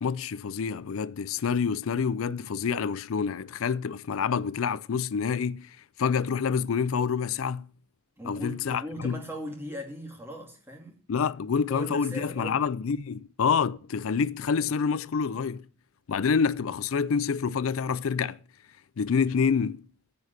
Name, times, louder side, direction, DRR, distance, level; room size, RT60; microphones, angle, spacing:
voice 1, 0.0-7.7 8.2-9.2 11.1-15.7 16.1-18.4 19.0-19.9, left 6 dB, 85° left, 0.4 m, -27 dB
voice 2, 8.2-11.0 11.7-12.6, equal, 10° right, 2.5 m, -39 dB
9.7 x 5.6 x 8.0 m
head